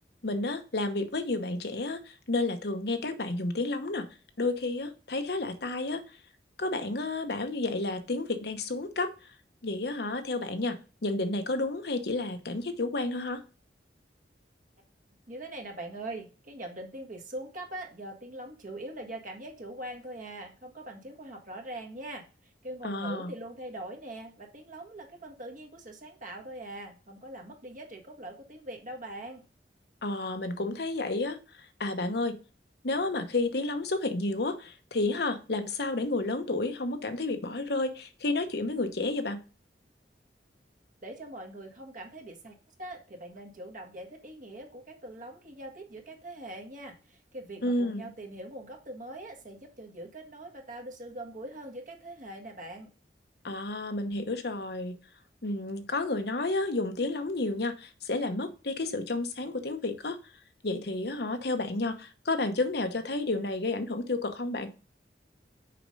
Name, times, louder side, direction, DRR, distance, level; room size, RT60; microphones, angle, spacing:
voice 1, 0.2-4.1 4.4-6.0 6.6-9.1 9.6-13.4 22.8-23.3 30.0-31.4 31.8-32.4 32.8-39.4 47.6-48.1 53.4-55.0 55.4-60.2 60.6-64.7, left 2 dB, 65° left, 7 dB, 1.0 m, -31 dB
voice 2, 15.3-22.3 22.6-29.4 41.0-42.5 42.8-52.9, right 1 dB, 50° right, 2 dB, 1.7 m, -42 dB
6.6 x 5.1 x 5.3 m, 0.34 s
head